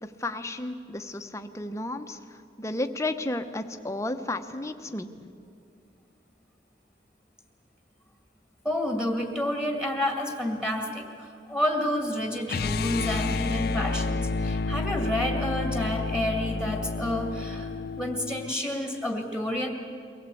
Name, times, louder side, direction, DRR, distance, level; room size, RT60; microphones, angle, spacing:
voice 1, 0.0-2.2 2.6-5.1, left 2 dB, 15° left, 7 dB, 0.9 m, -32 dB
voice 2, 8.6-17.7 18.0-19.7, left 1 dB, 5° right, 2 dB, 2.2 m, -29 dB
sound 1, 12.5-18.5, left 3 dB, 60° left, 0.5 m, -30 dB
23.5 x 17.0 x 8.5 m, 2.5 s
head